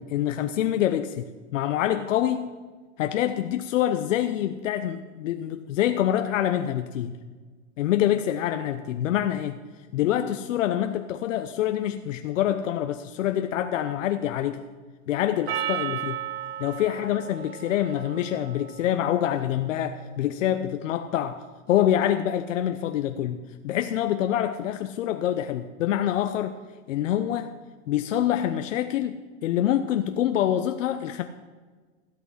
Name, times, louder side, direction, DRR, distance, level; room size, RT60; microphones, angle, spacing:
voice 1, 0.1-1.3 1.5-2.5 3.0-7.1 7.8-9.6 9.9-14.6 15.1-16.2 16.6-26.6 26.9-27.5 27.9-31.2, left 11 dB, 80° left, 7 dB, 0.8 m, -26 dB
Percussion, 15.5-20.0, right 11 dB, 50° right, 1.1 m, -35 dB
16.0 x 6.0 x 6.3 m, 1.4 s
supercardioid pair, 135°, 37 cm